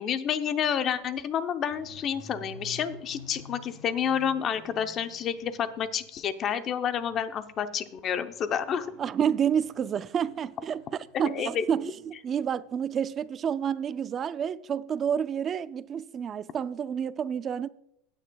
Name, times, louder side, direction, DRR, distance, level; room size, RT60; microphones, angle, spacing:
voice 1, 0.0-8.9 11.2-11.6, left 8 dB, 30° left, 0.7 m, -29 dB
sound 1, 1.7-6.2 6.6-11.9 12.1-12.4 12.8-12.9 13.2-13.3, equal, 55° left, 4.1 m, -51 dB
voice 2, 8.7-17.7, right 8 dB, 25° right, 0.4 m, -29 dB
16.0 x 9.3 x 2.3 m
supercardioid pair, 150°, 0 cm